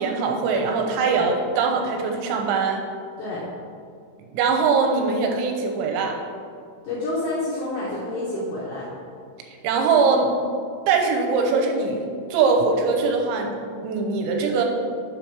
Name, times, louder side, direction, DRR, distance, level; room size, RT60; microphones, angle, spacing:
voice 1, 0.0-2.8 4.3-6.2 9.6-10.3 10.9-12.0 12.3-13.5 13.8-14.6, right 4 dB, 85° right, 3 dB, 3.3 m, -21 dB
voice 2, 6.8-8.9, left 2 dB, 80° left, -6 dB, 2.2 m, -28 dB
7.8 x 5.2 x 4.6 m, 2.3 s
omnidirectional pair, 5.9 m